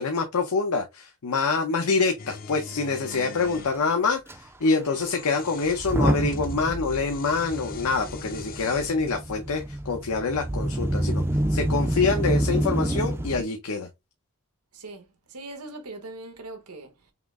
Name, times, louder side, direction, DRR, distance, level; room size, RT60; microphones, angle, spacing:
voice 1, 0.0-11.2 11.5-13.9, left 4 dB, 80° left, 0.7 m, -26 dB
sound 1, 2.2-3.7 4.9-5.8 6.3-9.0, left 5 dB, 40° left, 0.5 m, -43 dB
Motor vehicle (road) / Engine starting / Accelerating revving vroom, 3.1-3.2 3.4-3.7 4.3-4.4 5.7-13.4, right 1 dB, 10° right, 0.3 m, -28 dB
voice 2, 14.7-17.1, right 2 dB, 90° right, 1.1 m, -41 dB
5.8 x 2.0 x 3.5 m
head